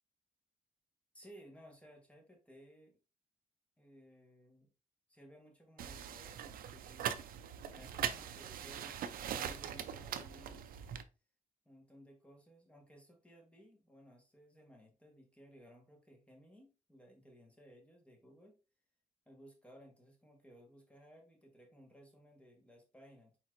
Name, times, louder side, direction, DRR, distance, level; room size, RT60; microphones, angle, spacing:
voice 1, 1.1-3.0 3.8-4.7 5.1-7.1 7.7-10.8 11.6-18.6 19.3-23.4, equal, 10° left, 1 dB, 1.4 m, -59 dB
sound 1, 5.8-11.0, right 9 dB, 90° right, 0.5 m, -41 dB
4.4 x 4.3 x 2.5 m, 0.30 s
cardioid pair, 110°, 14 cm